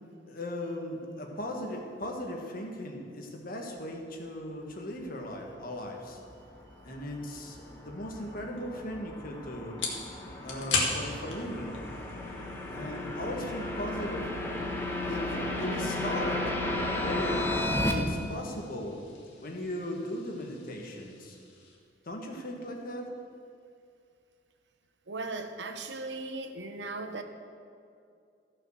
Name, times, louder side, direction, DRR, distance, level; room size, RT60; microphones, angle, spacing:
voice 1, 0.3-6.2 6.8-9.8 10.4-11.8 12.7-14.3 15.0-16.5 17.0-19.0 19.4-21.4 22.0-23.1, equal, 50° left, 1 dB, 1.6 m, -38 dB
sound 1, 6.4-17.9, left 1 dB, 10° left, 1.1 m, -34 dB
sound 2, 8.6-21.8, left 3 dB, 80° left, 2.0 m, -40 dB
voice 2, 25.1-27.2, right 3 dB, 70° right, 7 dB, 0.9 m, -37 dB
14.5 x 6.5 x 6.4 m, 2.4 s
head